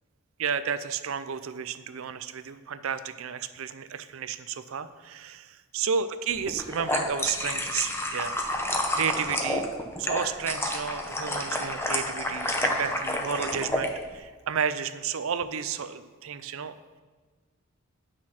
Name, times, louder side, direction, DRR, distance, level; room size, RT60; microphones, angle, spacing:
voice 1, 0.4-8.6 8.9-9.7 10.0-16.7, right 7 dB, 70° right, 12 dB, 0.5 m, -32 dB
sound 1, 6.5-13.9, left 1 dB, 10° left, 0.7 m, -29 dB
8.8 x 6.2 x 5.7 m, 1.5 s
head